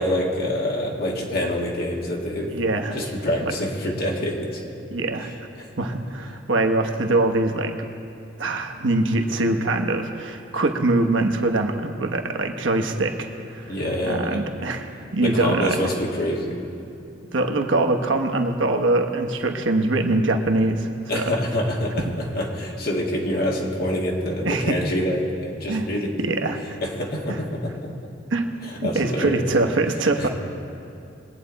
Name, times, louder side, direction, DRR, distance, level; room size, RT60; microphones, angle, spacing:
voice 1, 0.0-2.5 2.9-4.6 5.6-5.7 13.6-14.4 15.2-16.6 21.1-26.4 26.8-27.9 28.6-29.5 30.2-30.3, equal, 55° left, -2 dB, 2.1 m, -26 dB
voice 2, 2.5-3.0 4.9-5.3 5.8-7.7 8.4-13.8 14.0-15.9 17.3-21.2 24.4-24.7 25.7-25.9 26.2-26.6 27.3-27.4 28.3-28.4 28.8-30.3, right 2 dB, 75° right, 4 dB, 1.1 m, -23 dB
22.5 x 8.8 x 4.1 m, 2.6 s
head